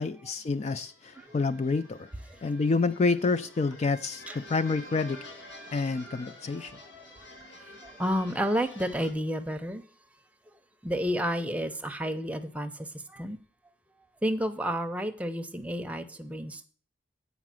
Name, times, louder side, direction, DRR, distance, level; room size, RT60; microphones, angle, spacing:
voice 1, 0.0-2.1 2.4-5.2 5.7-6.7, left 4 dB, 35° left, 0.3 m, -28 dB
sound 1, 0.6-9.1, left 1 dB, 85° left, 1.8 m, -49 dB
voice 2, 8.0-9.8 10.8-13.4 14.2-16.6, equal, 5° right, 0.6 m, -30 dB
8.2 x 4.8 x 7.5 m
head